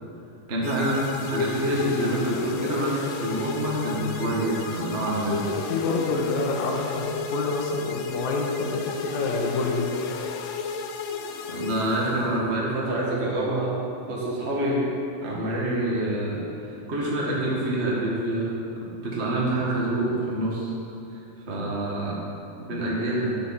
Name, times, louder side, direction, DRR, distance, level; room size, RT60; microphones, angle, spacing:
voice 1, 0.5-5.4 11.5-13.7 14.0-14.8 15.2-18.6 19.0-20.7 21.5-22.2 22.6-23.3, right 1 dB, 30° right, -4 dB, 1.3 m, -26 dB
sound 1, 0.6-12.5, left 5 dB, 90° left, 2.3 m, -33 dB
voice 2, 5.7-9.9, left 3 dB, 75° left, -2 dB, 2.3 m, -27 dB
11.0 x 6.7 x 5.8 m, 2.7 s
omnidirectional pair, 3.6 m